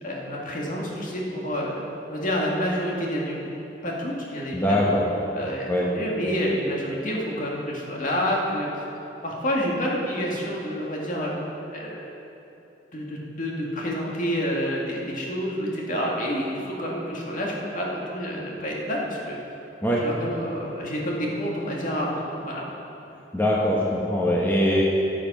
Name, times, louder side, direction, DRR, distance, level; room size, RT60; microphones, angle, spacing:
voice 1, 0.0-1.8 2.1-3.6 3.8-4.9 5.3-8.8 9.2-11.4 11.7-12.1 12.9-19.4 19.9-22.7, equal, 50° left, -3 dB, 2.0 m, -28 dB
voice 2, 4.5-5.0 5.7-5.9 19.8-20.0 23.3-24.8, left 1 dB, 10° left, -4 dB, 1.1 m, -22 dB
14.0 x 7.6 x 5.5 m, 3.0 s
head